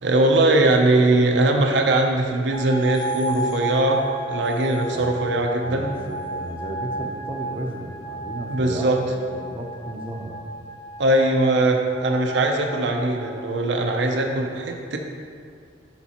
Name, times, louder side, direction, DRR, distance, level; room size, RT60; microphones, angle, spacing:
voice 1, 0.0-4.0 4.3-5.9 8.5-9.0 11.0-15.0, right 2 dB, 70° right, 2 dB, 0.6 m, -20 dB
sound 1, 2.5-13.6, right 2 dB, 25° left, 0.3 m, -33 dB
voice 2, 4.9-5.2 5.6-10.4, right 1 dB, 30° right, 1 dB, 0.6 m, -34 dB
8.1 x 5.9 x 2.9 m, 2.2 s
head